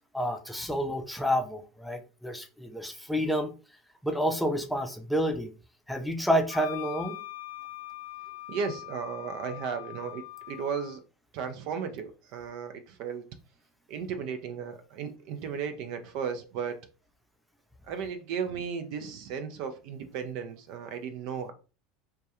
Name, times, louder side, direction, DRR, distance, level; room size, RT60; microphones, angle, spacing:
voice 1, 0.1-3.5 4.0-5.5 5.9-7.2, equal, ahead, 0.5 m, -29 dB
Wind instrument woodwind instrument, 6.5-11.0, left 18 dB, 65° left, 0.4 m, -42 dB
voice 2, 8.5-11.0 11.3-13.2 13.9-16.8 17.9-21.5, right 6 dB, 65° right, 0.4 m, -35 dB
2.2 x 2.2 x 2.8 m
hypercardioid pair, 80°, 0 cm